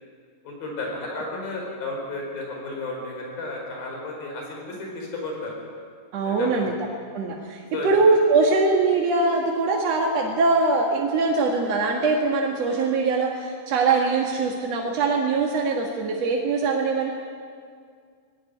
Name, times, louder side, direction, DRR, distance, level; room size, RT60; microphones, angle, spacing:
voice 1, 0.4-5.5 6.2-6.7 7.7-7.9, left 2 dB, 70° left, 0 dB, 6.5 m, -33 dB
voice 2, 6.1-6.7 7.1-17.1, right 3 dB, 55° right, 0 dB, 2.2 m, -22 dB
19.0 x 18.0 x 9.7 m, 2.1 s
omnidirectional pair, 4.4 m